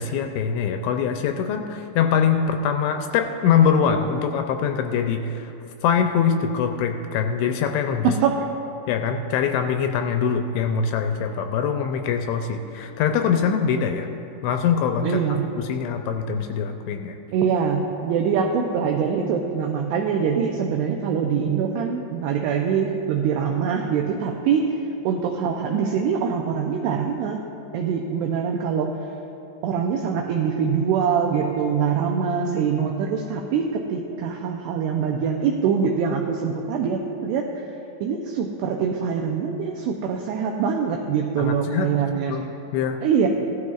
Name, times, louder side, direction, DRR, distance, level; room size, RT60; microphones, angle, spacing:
voice 1, 0.0-5.5 5.8-8.1 8.9-14.1 14.4-15.2 15.7-17.2 41.4-42.0 42.3-42.4 42.7-43.0, left 7 dB, 85° left, 5 dB, 2.7 m, -23 dB
voice 2, 8.0-8.4 13.6-13.8 15.0-15.5 17.3-24.8 25.0-27.4 27.7-29.0 29.6-37.7 38.0-42.4 43.0-43.3, right 6 dB, 90° right, 2 dB, 2.3 m, -24 dB
17.0 x 13.0 x 2.4 m, 2.9 s
omnidirectional pair, 5.5 m